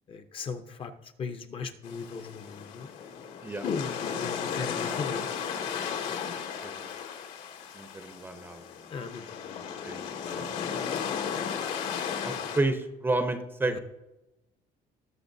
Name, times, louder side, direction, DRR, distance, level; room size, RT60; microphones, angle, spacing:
voice 1, 0.1-2.9 3.6-5.3 8.9-9.9 13.6-13.8, left 5 dB, 35° left, 8 dB, 0.7 m, -37 dB
sound 1, 1.8-12.6, left 7 dB, 85° left, 2.5 m, -35 dB
voice 2, 7.7-8.6 9.8-10.0 10.3-10.5 12.2-13.8, right 2 dB, 15° right, 7 dB, 0.6 m, -31 dB
19.0 x 6.9 x 2.6 m, 0.98 s
cardioid pair, 170°, 17 cm